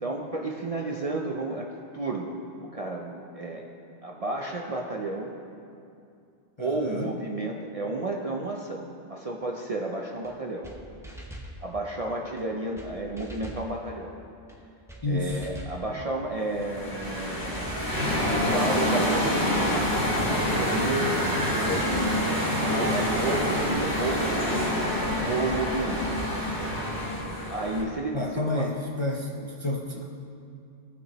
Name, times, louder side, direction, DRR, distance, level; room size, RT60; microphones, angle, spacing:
voice 1, 0.0-1.7 1.9-3.6 4.0-5.4 6.6-10.7 11.6-14.1 15.1-17.8 18.2-19.9 20.2-22.0 22.7-24.8 25.2-26.1 27.5-28.7, right 2 dB, 45° right, 0 dB, 0.5 m, -32 dB
voice 2, 6.6-7.1 15.0-15.5 28.1-30.1, left 2 dB, 35° left, -2 dB, 0.5 m, -30 dB
sound 1, 10.2-10.3 10.6-10.8 11.0-11.5 12.4-12.5 12.8-12.9 13.2-13.7 14.5-14.6 14.9-15.0 15.3-15.8 16.6-16.7 17.0-17.1 17.4-17.9 18.7-18.8 19.1-19.3 19.5-20.0 20.9-21.0 21.2-21.4 21.7-22.1 23.0-23.1 23.4-23.5 23.8-24.3 25.1-25.2 25.5-25.6 25.9-26.4, right 1 dB, 5° right, 0.7 m, -42 dB
sound 2, 16.5-27.8, equal, 20° left, 1.6 m, -27 dB
16.5 x 6.1 x 3.0 m, 2.5 s
omnidirectional pair, 1.2 m